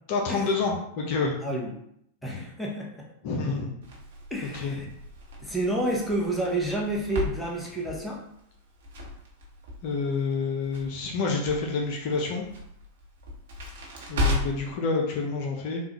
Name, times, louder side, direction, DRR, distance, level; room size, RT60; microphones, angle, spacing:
voice 1, 0.1-1.4 2.3-2.5 3.2-3.7 4.5-4.8 9.8-12.5 14.1-15.8, left 4 dB, 50° left, 0 dB, 0.6 m, -28 dB
voice 2, 1.4-1.7 2.2-3.1 4.3-4.9 5.4-8.2, right 1 dB, 5° left, -2 dB, 0.9 m, -29 dB
Crackle, 3.8-14.7, left 2 dB, 65° right, 1.1 m, -35 dB
3.6 x 2.4 x 3.0 m, 0.72 s
figure-of-eight pair, 95°, 0 cm